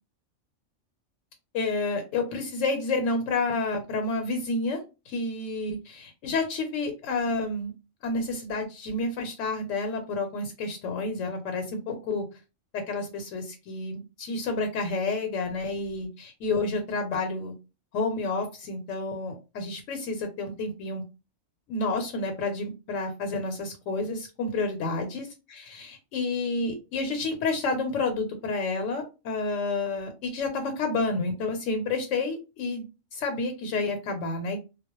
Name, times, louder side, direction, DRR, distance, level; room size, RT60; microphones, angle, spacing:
voice 1, 1.5-4.8 5.1-7.7 8.0-12.2 12.7-17.5 17.9-21.0 21.7-32.8 33.1-34.6, left 3 dB, 80° left, 5 dB, 0.9 m, -30 dB
2.2 x 2.0 x 2.9 m, 0.29 s
omnidirectional pair, 1.3 m